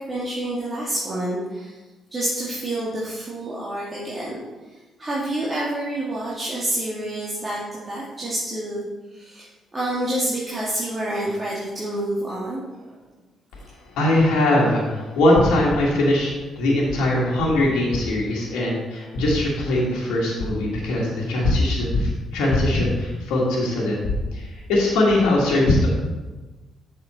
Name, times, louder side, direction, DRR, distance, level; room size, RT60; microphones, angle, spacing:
voice 1, 0.0-1.8 2.1-4.4 5.0-8.8 9.1-9.5 9.7-13.0, right 1 dB, 30° right, -7 dB, 2.1 m, -28 dB
voice 2, 13.9-24.0 24.3-25.9, left 1 dB, 75° left, -4 dB, 1.6 m, -21 dB
7.2 x 6.0 x 4.2 m, 1.2 s
hypercardioid pair, 45°, 0 cm